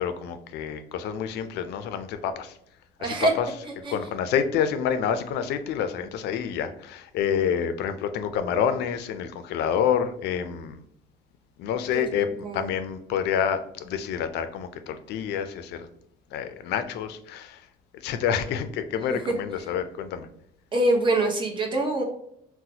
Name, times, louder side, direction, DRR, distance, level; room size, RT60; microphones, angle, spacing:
voice 1, 0.0-2.6 3.0-3.5 3.9-10.8 11.6-15.9 16.3-17.6 17.9-20.3, left 8 dB, 80° left, 10 dB, 0.4 m, -28 dB
voice 2, 3.0-3.3 3.8-4.0 11.9-12.7 19.1-19.3 20.7-22.0, right 2 dB, 30° right, 1 dB, 0.9 m, -25 dB
4.0 x 2.1 x 2.8 m, 0.74 s
cardioid pair, 110°, 17 cm